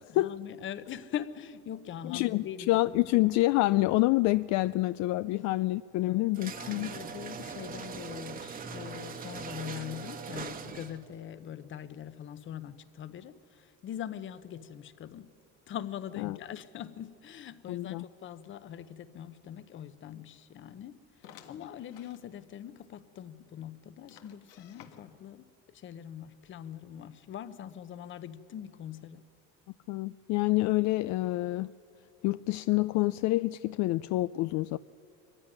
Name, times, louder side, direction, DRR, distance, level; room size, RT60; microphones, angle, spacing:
voice 1, 0.1-2.7 5.2-5.7 5.9-6.2 6.5-15.3 15.7-29.2, left 10 dB, 40° left, 0.9 m, -42 dB
voice 2, 2.0-6.9 16.2-16.4 17.7-18.0 29.9-31.7 32.2-34.8, left 18 dB, 65° left, 0.4 m, -27 dB
sound 1, 6.3-11.1, right 5 dB, 30° right, 1.2 m, -41 dB
sound 2, 21.2-22.2 22.8-22.9 23.2-23.3 24.1-25.3, left 9 dB, 85° left, 1.6 m, -54 dB
23.0 x 15.5 x 10.0 m
cardioid pair, 140°, 30 cm